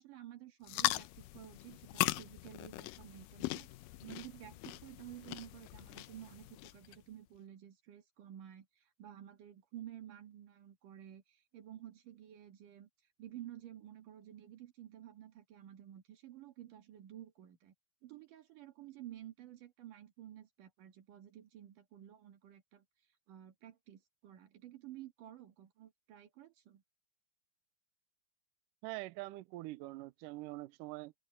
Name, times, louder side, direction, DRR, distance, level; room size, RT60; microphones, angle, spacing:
voice 1, 0.0-3.7 4.0-12.9 13.2-17.7 18.0-22.8 23.3-26.8, right 12 dB, 60° right, 3.1 m, -52 dB
sound 1, 0.6-7.0, left 17 dB, 85° left, 1.9 m, -39 dB
voice 2, 28.8-31.1, right 19 dB, 80° right, 2.0 m, -44 dB
omnidirectional pair, 4.5 m